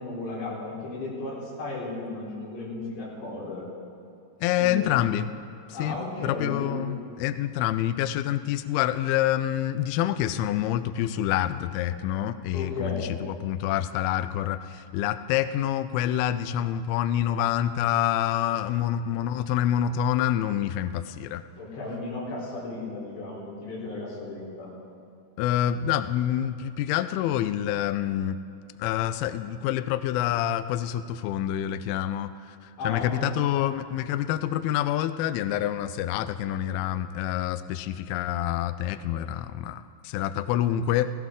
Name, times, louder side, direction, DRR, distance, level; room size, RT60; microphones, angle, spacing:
voice 1, 0.0-3.7 4.6-5.0 5.7-6.8 12.5-13.1 21.6-24.7 32.8-33.3, left 3 dB, 70° left, -6 dB, 6.1 m, -34 dB
voice 2, 4.4-5.3 5.7-6.0 6.2-21.4 25.4-28.4 28.8-41.1, left 11 dB, 90° left, 11 dB, 2.2 m, -27 dB
18.0 x 17.0 x 3.7 m, 2.6 s
omnidirectional pair, 5.0 m